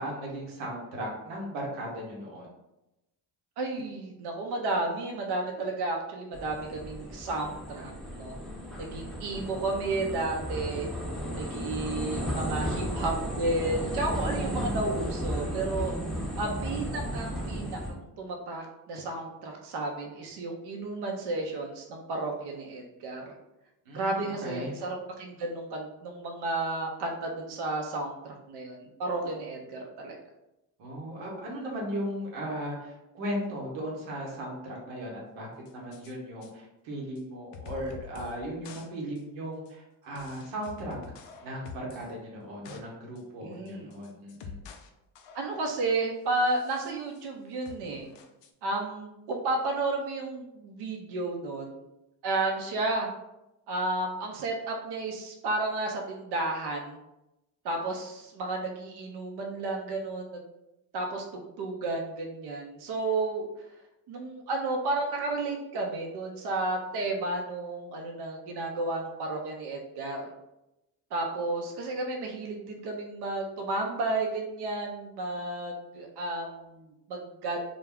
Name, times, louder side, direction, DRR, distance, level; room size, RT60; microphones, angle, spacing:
voice 1, 0.0-2.5 14.3-14.6 15.4-15.6 23.9-24.8 30.8-41.0 41.4-44.6, equal, 85° right, -2 dB, 0.9 m, -37 dB
voice 2, 3.6-8.4 8.8-10.9 11.3-15.9 16.4-23.2 23.9-30.2 43.4-43.9 45.3-48.1 48.6-51.8 52.2-53.1 53.7-57.0 57.6-60.3 60.9-63.5 64.1-70.3 71.1-77.6, right 2 dB, 60° right, 1 dB, 0.6 m, -32 dB
sound 1, 6.3-17.9, equal, ahead, 0.6 m, -34 dB
sound 2, 35.7-36.1 36.4-36.5 37.2-37.3 37.5-38.4 38.6-38.9 39.2-39.3 39.7-39.8 40.2-42.1 42.4-42.8 43.2-43.3 43.7-44.9 45.2-45.8 46.4-47.3 47.7-48.5, left 5 dB, 65° left, 0.5 m, -47 dB
2.3 x 2.1 x 3.4 m, 0.92 s
supercardioid pair, 60°, 47 cm